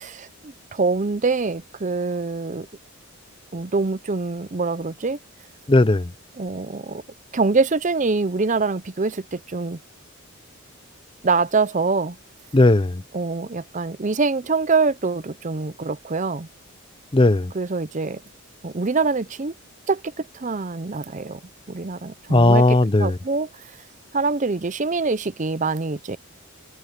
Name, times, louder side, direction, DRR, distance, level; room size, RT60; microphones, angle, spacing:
voice 1, 0.0-2.7 3.5-5.2 6.4-7.0 7.3-9.8 11.2-12.2 13.1-16.5 17.5-18.2 18.6-19.5 19.9-21.4 21.7-23.7 24.1-26.2, right 4 dB, 35° right, 0.6 m, -24 dB
voice 2, 5.7-6.1 12.5-13.0 17.1-17.5 22.3-23.2, left 2 dB, 25° left, 0.6 m, -16 dB
head